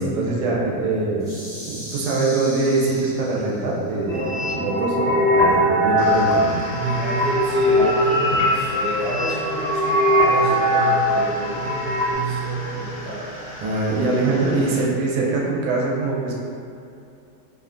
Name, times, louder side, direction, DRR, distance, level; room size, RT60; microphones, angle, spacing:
voice 1, 0.0-1.4 1.7-6.6 8.3-8.4 13.6-16.4, right 3 dB, 80° right, -3 dB, 1.2 m, -23 dB
sound 1, 1.2-3.8, equal, 40° left, 0.8 m, -37 dB
sound 2, 4.1-12.1, equal, 55° right, 1.2 m, -20 dB
sound 3, 6.0-14.8, equal, 70° left, 1.3 m, -37 dB
voice 2, 6.7-13.3 14.2-14.8, right 2 dB, 90° left, -9 dB, 0.6 m, -29 dB
3.2 x 2.1 x 2.4 m, 2.6 s
omnidirectional pair, 1.9 m